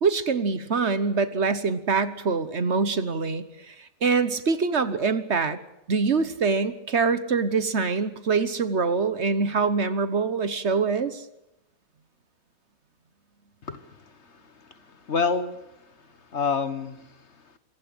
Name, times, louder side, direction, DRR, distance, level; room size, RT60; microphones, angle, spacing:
voice 1, 0.0-5.6 5.9-11.2, right 4 dB, 55° right, 13 dB, 1.4 m, -24 dB
voice 2, 13.6-17.6, left 5 dB, 55° left, 11 dB, 1.7 m, -30 dB
25.5 x 15.5 x 7.9 m, 0.87 s
omnidirectional pair, 1.4 m